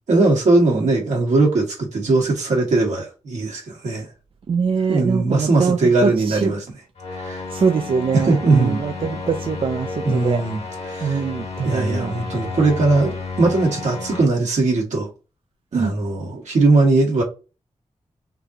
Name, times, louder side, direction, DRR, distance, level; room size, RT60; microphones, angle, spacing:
voice 1, 0.1-4.1 4.9-6.6 7.1-7.4 8.1-8.8 10.0-10.6 10.9-11.2 11.6-15.1 15.7-17.2, right 3 dB, 85° right, 1.8 m, -19 dB
voice 2, 4.5-6.5 7.5-10.4 11.0-12.1 15.7-15.9, right 6 dB, 50° right, 0.4 m, -23 dB
sound 1, 7.0-14.2, left 4 dB, 70° left, 1.3 m, -32 dB
3.9 x 2.9 x 3.8 m
wide cardioid pair, 160°, 12 cm